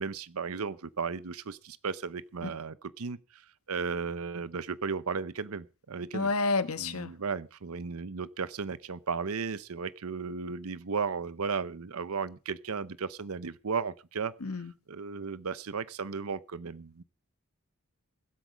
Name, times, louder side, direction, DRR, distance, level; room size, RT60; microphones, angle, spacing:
voice 1, 0.0-6.3 6.8-14.3 14.9-17.0, right 5 dB, 80° right, 0.7 m, -35 dB
voice 2, 6.1-7.1 14.4-14.7, left 3 dB, 80° left, 1.2 m, -30 dB
22.0 x 8.2 x 5.1 m
head